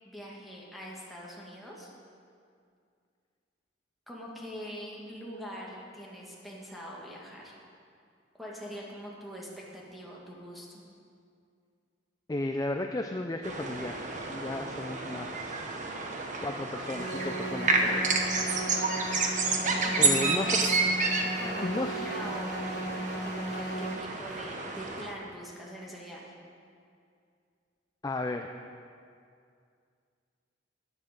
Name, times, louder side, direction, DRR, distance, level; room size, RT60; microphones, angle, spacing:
voice 1, 0.0-1.9 4.1-7.6 8.3-10.8 19.5-20.6 21.2-22.8 23.2-26.3, equal, ahead, -5 dB, 2.1 m, -43 dB
voice 2, 12.3-15.7 16.4-18.1 20.0-20.6 21.6-22.2 28.0-28.5, left 2 dB, 20° left, 5 dB, 0.4 m, -34 dB
sound 1, 13.4-25.1, right 3 dB, 40° right, 1.1 m, -30 dB
sound 2, 16.9-23.9, right 1 dB, 55° left, 1.2 m, -36 dB
14.0 x 10.0 x 5.3 m, 2.3 s
head